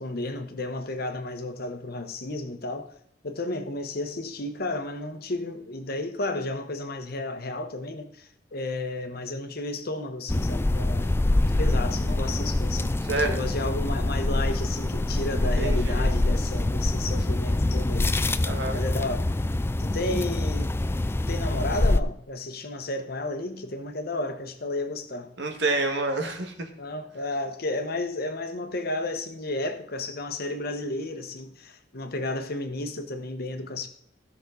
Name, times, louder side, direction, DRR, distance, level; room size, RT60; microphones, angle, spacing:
voice 1, 0.0-2.9 3.2-19.3 19.8-20.8 21.3-25.3 26.8-33.9, left 2 dB, 60° left, 1.2 m, -32 dB
sound 1, 10.3-22.0, left 2 dB, 15° left, 0.3 m, -25 dB
voice 2, 15.6-16.1 18.4-18.8 25.4-26.7, right 2 dB, 75° right, 1.7 m, -28 dB
16.0 x 6.3 x 3.9 m
head